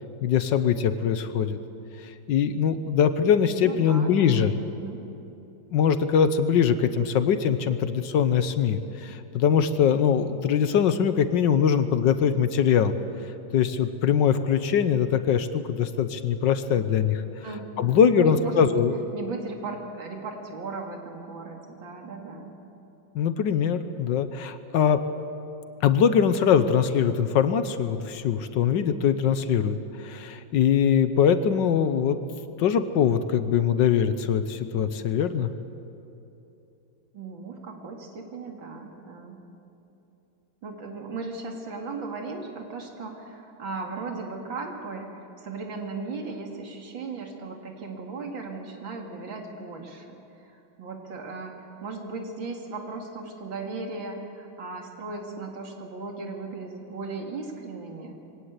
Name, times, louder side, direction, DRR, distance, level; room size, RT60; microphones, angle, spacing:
voice 1, 0.2-1.6 2.0-4.6 5.7-13.0 13.5-17.2 17.8-18.9 23.1-25.0 25.8-32.2 32.6-35.5, left 7 dB, 70° left, 11 dB, 1.4 m, -22 dB
voice 2, 3.6-5.0 17.4-18.8 19.1-22.5 37.1-39.4 40.6-50.1 50.4-51.5 51.8-58.1, right 3 dB, 75° right, 2 dB, 3.0 m, -37 dB
22.5 x 18.0 x 8.2 m, 2.9 s
omnidirectional pair, 2.2 m